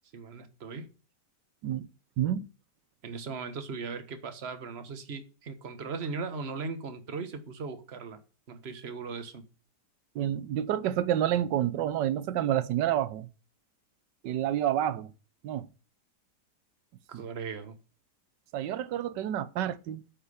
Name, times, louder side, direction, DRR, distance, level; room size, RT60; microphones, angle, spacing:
voice 1, 0.1-0.9 3.0-8.2 8.5-9.4 17.1-17.7, right 4 dB, 40° right, 1.4 m, -38 dB
voice 2, 2.2-2.5 10.1-13.3 14.2-15.1 15.4-15.7 17.1-17.2 18.5-20.0, right 11 dB, 90° right, 1.4 m, -29 dB
8.7 x 5.7 x 6.9 m
omnidirectional pair, 1.8 m